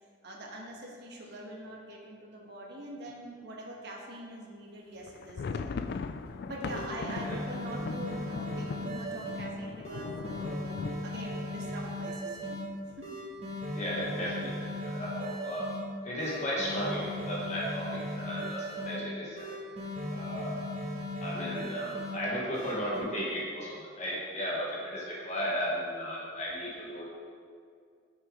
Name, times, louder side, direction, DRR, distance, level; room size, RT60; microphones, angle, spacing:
voice 1, 0.2-6.1 6.4-10.7 11.0-12.6 13.0-13.1, right 1 dB, 55° right, -2 dB, 1.3 m, -44 dB
sound 1, 5.0-12.7 13.1-13.2 13.4-13.7 14.2-14.7, left 4 dB, 55° left, 0.3 m, -40 dB
sound 2, 6.3-6.4 6.7-9.5 9.8-12.6 13.0-15.8 16.2-19.0 19.4-22.1 22.5-23.0, left 1 dB, 30° right, 1.7 m, -37 dB
voice 2, 13.7-15.7 16.0-19.6 20.1-20.6 21.2-27.0, equal, 35° left, -5 dB, 1.3 m, -35 dB
10.0 x 6.4 x 3.6 m, 2.2 s
head